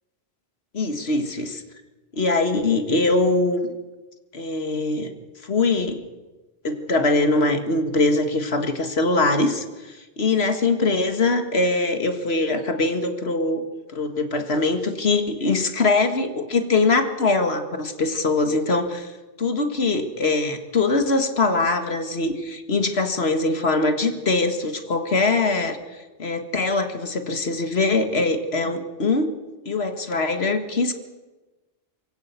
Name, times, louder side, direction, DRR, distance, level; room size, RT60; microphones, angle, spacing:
voice 1, 0.7-1.6 2.1-3.7 4.3-5.1 5.4-6.1 6.6-13.6 13.9-19.1 19.4-25.8 26.2-29.3 29.7-30.9, left 3 dB, 70° left, 7 dB, 2.0 m, -22 dB
23.0 x 16.5 x 8.2 m, 1.2 s
omnidirectional pair, 1.1 m